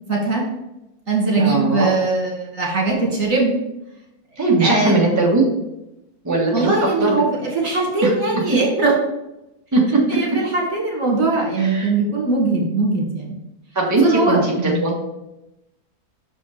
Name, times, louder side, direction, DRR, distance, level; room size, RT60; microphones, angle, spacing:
voice 1, 0.1-0.4 1.1-3.6 4.6-5.0 6.5-8.9 10.1-13.3 14.0-14.9, right 3 dB, 60° right, -3 dB, 2.5 m, -20 dB
voice 2, 1.3-1.9 4.4-5.4 6.2-7.2 8.0-8.1 9.7-9.8 11.6-11.9 13.7-14.5 14.8-15.0, right 3 dB, 10° right, -4 dB, 1.5 m, -19 dB
6.4 x 5.3 x 5.0 m, 0.91 s
omnidirectional pair, 1.6 m